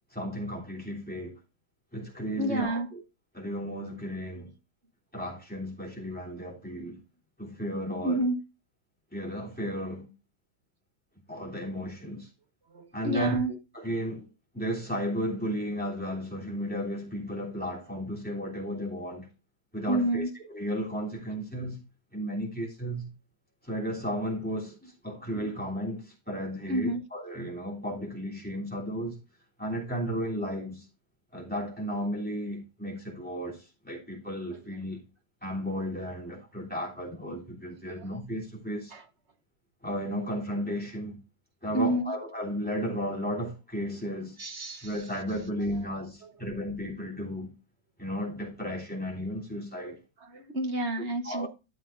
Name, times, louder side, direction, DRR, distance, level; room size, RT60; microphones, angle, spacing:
voice 1, 0.1-1.4 1.9-2.8 3.3-4.5 5.1-7.0 7.4-8.2 9.1-10.1 11.3-12.3 12.9-13.4 13.8-14.3 14.5-19.3 19.7-20.3 20.5-21.8 22.1-23.1 23.6-24.8 25.0-29.2 29.6-30.8 31.3-35.0 35.4-38.9 39.8-41.2 41.6-44.4 44.8-47.5 48.0-50.0 51.2-51.5, equal, 5° left, 3.0 m, -34 dB
voice 2, 2.4-2.9 4.3-4.5 8.0-8.4 12.7-13.5 19.9-20.3 24.8-24.9 25.2-25.3 26.7-27.0 34.5-34.7 37.9-38.1 38.9-39.1 41.7-42.1 44.4-45.2 45.6-45.9 46.2-46.4 49.8-51.5, right 1 dB, 40° right, 1.3 m, -30 dB
13.0 x 7.6 x 2.6 m
omnidirectional pair, 2.0 m